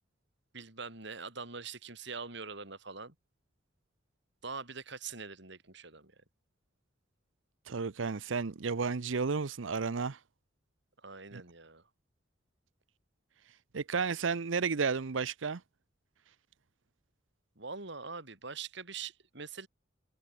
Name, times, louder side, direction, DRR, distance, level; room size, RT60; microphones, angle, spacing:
voice 1, 0.5-3.1 4.4-6.1 11.0-11.8 17.6-19.7, right 5 dB, 65° right, 4.0 m, -43 dB
voice 2, 7.7-10.2 11.3-11.4 13.7-15.6, right 5 dB, 90° right, 0.7 m, -32 dB
head